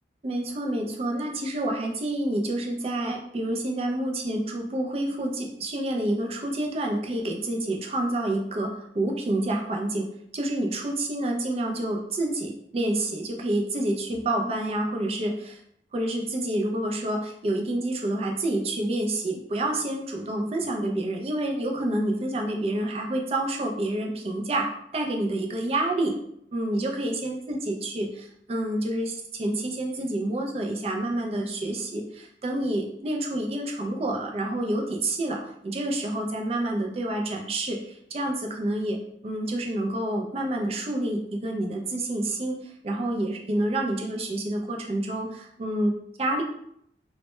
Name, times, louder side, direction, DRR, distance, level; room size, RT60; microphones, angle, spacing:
voice 1, 0.2-10.1 10.3-15.6 15.9-26.2 26.5-46.4, right 1 dB, 35° right, 2 dB, 0.3 m, -28 dB
2.1 x 2.0 x 2.9 m, 0.72 s
head